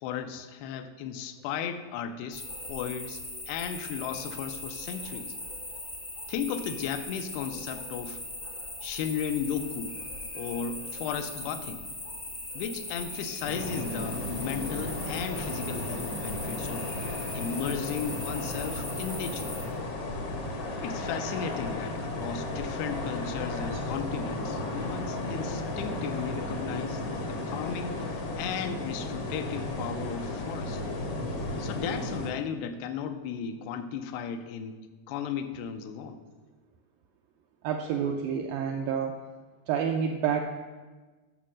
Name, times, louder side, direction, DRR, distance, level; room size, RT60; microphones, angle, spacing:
voice 1, 0.0-3.2 3.5-5.3 6.3-8.2 8.8-10.0 10.3-11.8 12.5-19.5 20.8-27.0 27.3-28.0 28.4-30.8 31.6-34.8 35.1-36.2, left 7 dB, 85° left, 8 dB, 2.7 m, -35 dB
sound 1, 2.3-19.7, left 1 dB, 40° left, 0.8 m, -39 dB
sound 2, 13.4-32.3, left 2 dB, 70° left, 1.4 m, -34 dB
voice 2, 37.6-39.2 39.7-40.5, right 7 dB, 85° right, 3 dB, 2.0 m, -29 dB
11.0 x 6.3 x 6.2 m, 1.3 s
omnidirectional pair, 4.7 m